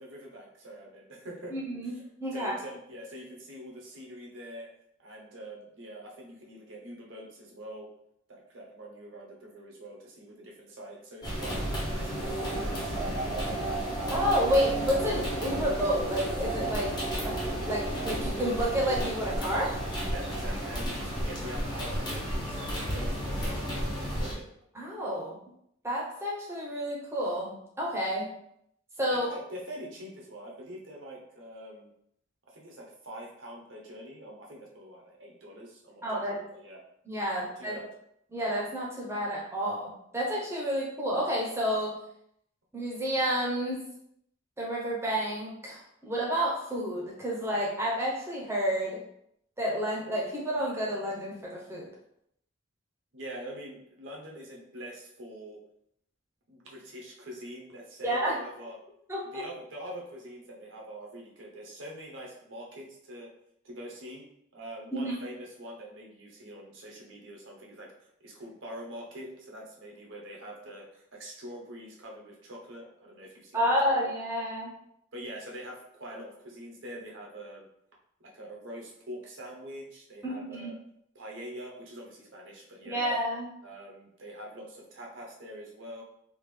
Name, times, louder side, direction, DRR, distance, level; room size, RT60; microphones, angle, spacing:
voice 1, 0.0-1.6 1.8-2.0 2.3-4.7 5.0-7.9 8.3-13.5 20.1-22.6 22.9-24.5 29.1-31.9 32.5-36.8 37.4-37.9 53.1-55.6 56.5-58.8 59.3-63.3 63.6-64.3 64.5-67.9 68.2-74.0 75.1-77.7 78.2-80.7 81.1-83.0 83.6-86.0, right 1 dB, 65° right, -2 dB, 0.8 m, -44 dB
voice 2, 1.5-1.9 2.2-2.5 14.1-16.9 17.2-17.4 17.7-19.8 24.7-25.4 25.8-28.3 29.0-29.3 36.0-36.4 37.1-37.8 38.3-42.0 42.7-43.8 44.6-49.0 49.6-51.9 58.0-58.4 59.1-59.4 64.9-65.1 73.5-74.7 80.2-80.7 82.9-83.5, equal, 10° right, -4 dB, 0.8 m, -30 dB
sound 1, 11.2-24.3, right 1 dB, 20° left, 0.8 m, -32 dB
3.5 x 2.4 x 3.3 m, 0.74 s
head